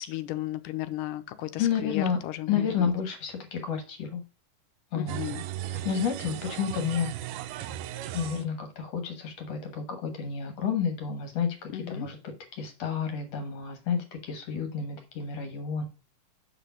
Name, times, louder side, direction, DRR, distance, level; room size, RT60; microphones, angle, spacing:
voice 1, 0.0-2.9 4.9-5.4 11.7-12.1, left 14 dB, 85° left, 2.3 m, -35 dB
voice 2, 1.6-2.2 2.5-4.2 4.9-5.2 5.7-7.1 8.1-15.8, left 7 dB, 60° left, 2.1 m, -30 dB
sound 1, 5.1-8.4, right 12 dB, 80° right, 2.1 m, -36 dB
7.4 x 5.0 x 5.6 m
omnidirectional pair, 3.8 m